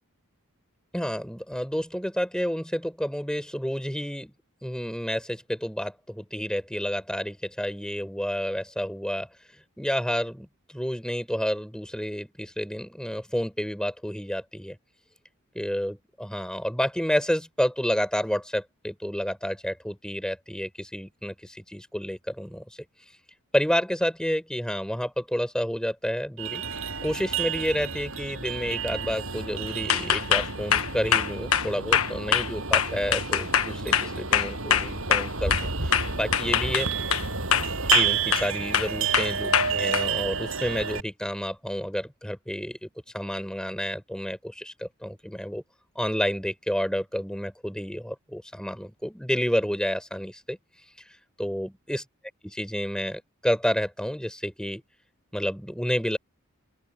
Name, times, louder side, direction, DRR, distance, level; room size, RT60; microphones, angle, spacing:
voice 1, 0.9-4.3 4.6-9.3 9.8-10.5 10.7-14.8 15.5-22.6 23.5-26.6 27.0-35.5 35.8-36.9 37.8-42.9 43.1-45.6 45.9-50.6 51.4-52.0 52.4-54.8 55.3-56.2, equal, 5° left, 6.2 m, -30 dB
sound 1, 26.4-41.0, right 6 dB, 65° right, 7.1 m, -30 dB
sound 2, 29.9-35.7 35.9-37.3 37.5-38.5 38.7-40.1, left 8 dB, 75° left, 1.4 m, -23 dB
open air
head